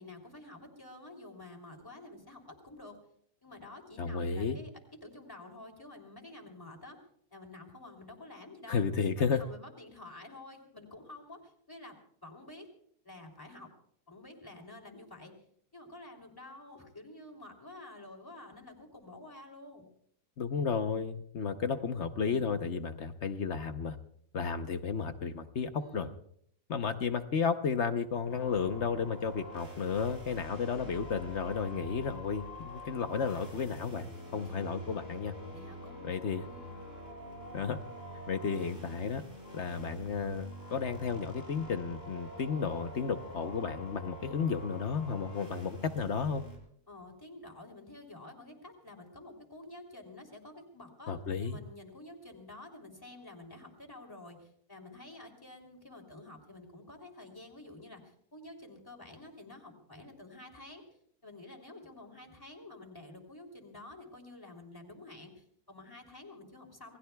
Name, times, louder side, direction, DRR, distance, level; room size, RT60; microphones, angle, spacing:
voice 1, 0.0-3.0 3.4-4.7 5.0-7.0 7.3-8.8 9.2-12.7 13.0-13.7 14.1-15.3 15.7-19.9 25.7-26.1 35.5-36.8 46.9-60.8 61.2-67.0, left 2 dB, 15° left, 1 dB, 3.1 m, -50 dB
voice 2, 4.0-4.6 8.7-9.4 20.4-24.0 24.3-26.1 26.7-34.1 34.3-35.3 36.0-36.5 37.5-37.8 38.3-39.2 39.5-46.4 51.1-51.6, left 5 dB, 50° left, 9 dB, 1.1 m, -33 dB
sound 1, 28.3-46.6, equal, 30° right, 6.0 m, -46 dB
28.0 x 19.5 x 2.3 m, 0.65 s
omnidirectional pair, 1.7 m